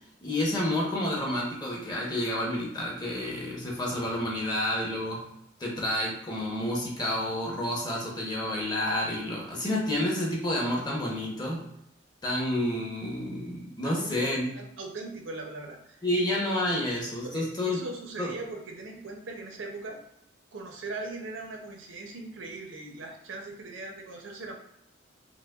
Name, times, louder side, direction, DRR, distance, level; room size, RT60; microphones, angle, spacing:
voice 1, 0.2-5.3 5.6-11.6 12.2-14.5 16.0-17.8 18.2-18.3, left 1 dB, 20° left, -3 dB, 0.8 m, -29 dB
voice 2, 13.8-16.2 17.2-20.0 20.5-24.6, right 3 dB, 75° right, 2 dB, 0.6 m, -40 dB
4.8 x 2.1 x 2.3 m, 0.77 s
head